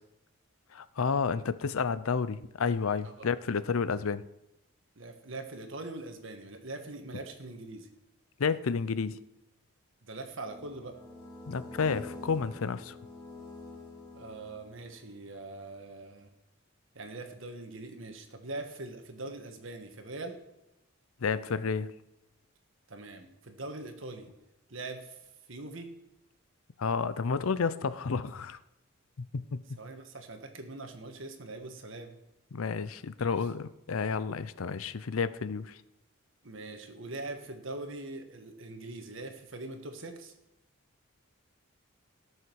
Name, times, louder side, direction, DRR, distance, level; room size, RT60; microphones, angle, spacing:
voice 1, 0.7-4.2 8.4-9.2 11.5-12.9 21.2-21.9 26.8-28.6 29.2-29.6 32.5-35.8, left 5 dB, 80° left, 15 dB, 0.6 m, -31 dB
voice 2, 5.0-7.9 10.0-11.0 14.1-16.3 16.9-20.4 22.9-24.3 24.7-25.2 25.5-26.0 29.8-32.1 33.2-33.5 36.4-40.3, right 2 dB, 65° right, 6 dB, 1.5 m, -42 dB
sound 1, 10.5-15.1, left 2 dB, 20° left, 2.7 m, -47 dB
17.5 x 6.5 x 4.7 m, 0.91 s
head